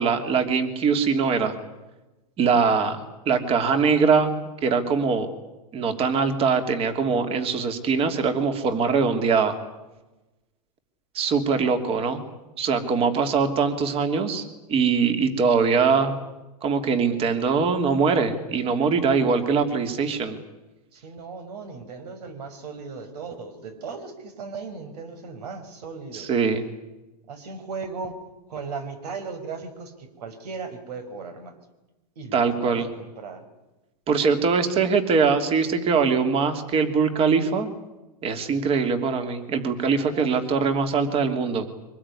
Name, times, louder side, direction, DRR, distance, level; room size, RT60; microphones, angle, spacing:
voice 1, 0.0-1.5 2.4-3.0 3.3-4.3 4.6-5.3 5.7-9.6 11.1-12.2 12.6-14.4 14.7-16.2 16.6-20.4 26.1-26.6 32.3-32.9 34.1-37.7 38.2-41.7, right 5 dB, 25° right, 8 dB, 2.9 m, -22 dB
voice 2, 14.7-15.0 15.5-15.7 20.9-26.3 27.3-28.2 28.5-31.6 32.2-33.4 40.1-40.3, right 4 dB, 70° right, 9 dB, 5.7 m, -37 dB
24.5 x 20.0 x 9.9 m, 1.0 s
supercardioid pair, 145°, 21 cm